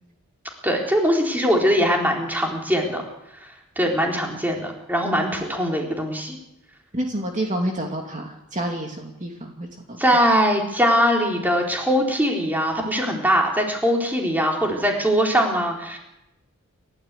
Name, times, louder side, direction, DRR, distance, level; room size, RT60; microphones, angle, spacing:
voice 1, 0.6-3.0 3.8-6.4 10.0-16.0, equal, 10° right, 0 dB, 3.9 m, -21 dB
voice 2, 6.9-9.7, right 1 dB, 35° right, 1 dB, 2.6 m, -28 dB
29.5 x 14.0 x 8.3 m, 0.88 s
head